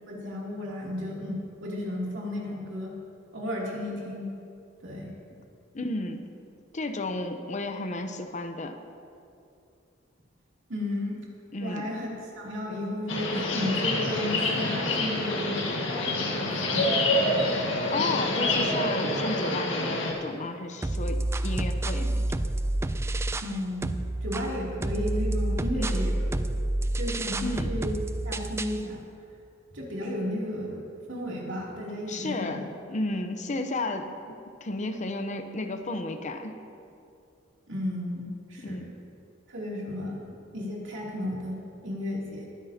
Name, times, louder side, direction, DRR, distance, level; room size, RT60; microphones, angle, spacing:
voice 1, 0.1-3.0 3.3-4.3 4.8-5.1 10.7-11.2 11.6-15.9 16.2-16.9 17.4-17.6 23.4-23.9 24.2-26.4 27.0-28.0 28.2-29.0 29.7-30.8 31.1-32.7 37.7-38.8 39.5-42.4, left 1 dB, 70° right, -3 dB, 2.7 m, -33 dB
voice 2, 5.7-6.2 6.7-8.8 11.5-11.9 17.9-22.3 25.7-26.1 27.4-27.7 32.1-34.4 34.6-36.6 38.6-38.9, left 2 dB, 40° left, 7 dB, 0.7 m, -33 dB
sound 1, 13.1-20.1, left 2 dB, 75° left, 1.7 m, -27 dB
sound 2, 20.8-23.6 23.8-28.8, right 1 dB, 15° right, 0.3 m, -29 dB
21.0 x 10.0 x 2.8 m, 2.6 s
head